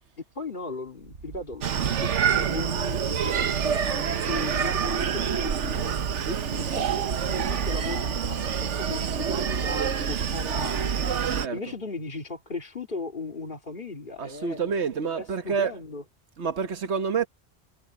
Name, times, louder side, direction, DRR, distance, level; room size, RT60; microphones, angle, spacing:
voice 1, 0.3-6.0 6.5-14.8 15.1-16.0, left 3 dB, 45° left, 2.5 m, -37 dB
Screaming, 1.6-11.5, right 7 dB, 90° right, 1.3 m, -27 dB
voice 2, 11.3-11.7 14.2-15.7 16.4-17.3, right 5 dB, 70° right, 1.5 m, -28 dB
omnidirectional pair, 1.2 m